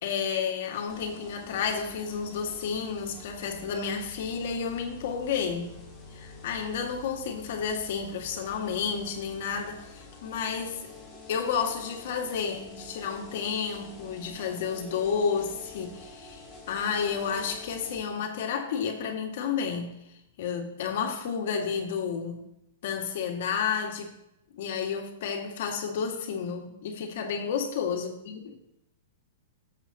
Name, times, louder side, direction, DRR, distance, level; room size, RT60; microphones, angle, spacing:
voice 1, 0.0-5.8 6.1-10.9 11.3-20.0 20.4-22.4 22.8-24.1 24.6-28.4, left 6 dB, 60° left, 2.1 m, -31 dB
sound 1, 0.9-18.0, left 3 dB, 10° left, 3.9 m, -47 dB
19.5 x 7.7 x 3.0 m
hypercardioid pair, 155°, 0 cm